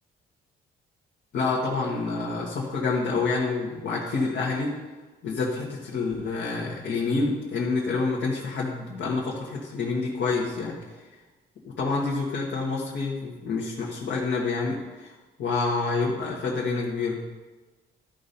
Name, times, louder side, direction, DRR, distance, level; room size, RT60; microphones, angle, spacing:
voice 1, 1.3-4.7 5.2-10.8 11.7-17.2, left 4 dB, 65° left, -4 dB, 1.6 m, -28 dB
13.0 x 5.3 x 4.3 m, 1.2 s
cardioid pair, 90°, 20 cm